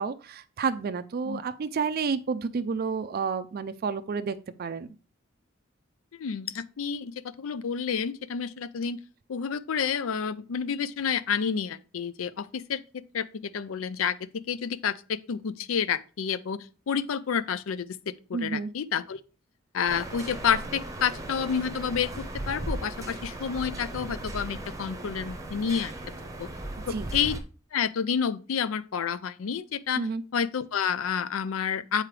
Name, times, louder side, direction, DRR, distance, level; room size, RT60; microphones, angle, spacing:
voice 1, 0.0-4.9 18.3-18.7 26.9-27.1 30.0-30.2, right 5 dB, 50° right, 0.4 m, -30 dB
voice 2, 6.2-9.0 9.3-19.2 19.7-25.9 26.4-26.5 26.9-27.4 27.7-30.0 30.3-32.0, left 7 dB, 80° left, 0.5 m, -29 dB
sound 1, 19.9-27.4, right 1 dB, 15° right, 0.8 m, -37 dB
7.6 x 4.7 x 3.2 m
head